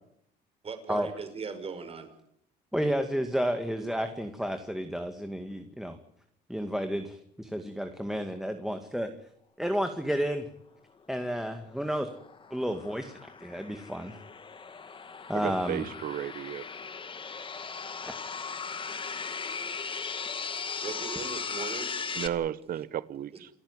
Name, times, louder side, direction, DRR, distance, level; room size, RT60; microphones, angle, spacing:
voice 1, 0.6-2.1 20.8-21.9, right 5 dB, 35° right, 5.7 m, -38 dB
voice 2, 2.7-6.0 6.5-9.1 9.6-10.5 11.1-12.1 12.5-14.2 15.3-15.9, equal, ahead, 2.2 m, -31 dB
sound 1, 11.6-22.3, left 5 dB, 30° left, 2.3 m, -38 dB
voice 3, 15.3-16.6 22.2-23.5, right 11 dB, 60° right, 1.1 m, -33 dB
29.0 x 14.5 x 9.8 m
cardioid pair, 110°, 17 cm